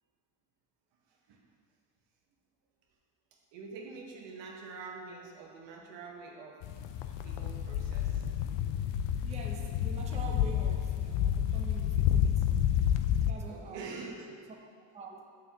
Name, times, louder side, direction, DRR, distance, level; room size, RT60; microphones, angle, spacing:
voice 1, 3.5-6.7 7.2-8.4 9.6-9.7 13.4-14.4, right 4 dB, 80° right, 0 dB, 1.2 m, -46 dB
sound 1, 6.6-13.3, left 10 dB, 90° left, 0.6 m, -29 dB
voice 2, 9.2-12.6 13.2-14.1 14.9-15.2, right 3 dB, 15° right, 1 dB, 0.5 m, -45 dB
7.1 x 6.3 x 2.9 m, 2.1 s
cardioid pair, 135°, 43 cm